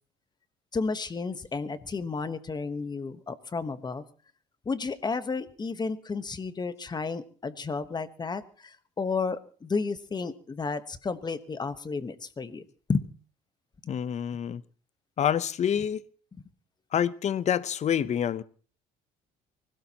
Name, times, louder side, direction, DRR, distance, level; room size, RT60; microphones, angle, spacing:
voice 1, 0.7-4.0 4.6-13.1, left 4 dB, 25° left, 12 dB, 1.1 m, -32 dB
voice 2, 13.9-14.6 15.2-16.0 16.9-18.4, left 9 dB, 40° left, 17 dB, 0.7 m, -27 dB
24.0 x 17.0 x 2.9 m, 0.40 s
cardioid pair, 110°, 17 cm